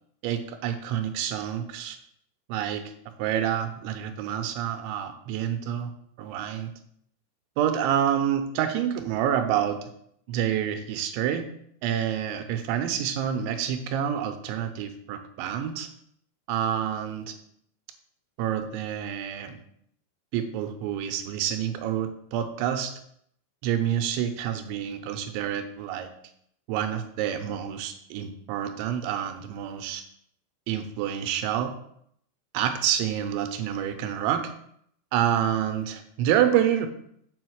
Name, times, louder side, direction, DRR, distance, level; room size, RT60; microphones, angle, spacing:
voice 1, 0.2-2.0 2.5-2.8 3.2-5.9 6.2-6.7 7.6-9.9 10.3-11.5 11.8-15.9 16.5-17.4 18.4-19.6 20.3-22.9 23.6-26.1 26.7-30.0 30.7-31.8 32.5-34.5 35.1-36.9, right 10 dB, 85° right, 7 dB, 3.2 m, -28 dB
7.1 x 5.1 x 6.3 m, 0.71 s
omnidirectional pair, 5.2 m